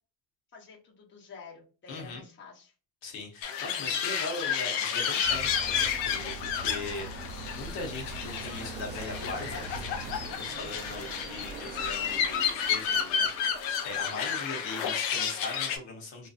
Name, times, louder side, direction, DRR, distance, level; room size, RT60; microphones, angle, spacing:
voice 1, 0.5-2.7 14.6-14.7, left 5 dB, 25° left, -2 dB, 0.8 m, -50 dB
voice 2, 1.9-2.2 3.0-9.7 10.4-16.3, left 3 dB, 60° left, 1 dB, 1.0 m, -40 dB
sound 1, 3.4-15.8, left 7 dB, 85° left, 0.7 m, -31 dB
sound 2, 5.2-10.3, right 2 dB, 80° right, 0.9 m, -42 dB
sound 3, 6.5-15.1, right 4 dB, 25° right, 0.4 m, -47 dB
2.7 x 2.3 x 2.3 m, 0.35 s
supercardioid pair, 100°, 49 cm